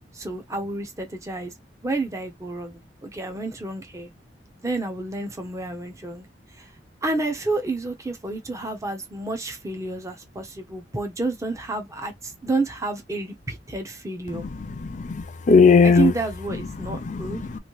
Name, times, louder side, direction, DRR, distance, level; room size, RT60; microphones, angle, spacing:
voice 1, 0.1-1.5 1.8-4.1 4.6-6.3 6.6-6.7 7.0-14.4 15.8-17.4, right 2 dB, 20° right, 0.7 m, -30 dB
voice 2, 14.7-16.1 16.9-17.6, left 5 dB, 45° left, 0.5 m, -18 dB
3.1 x 2.6 x 3.0 m
head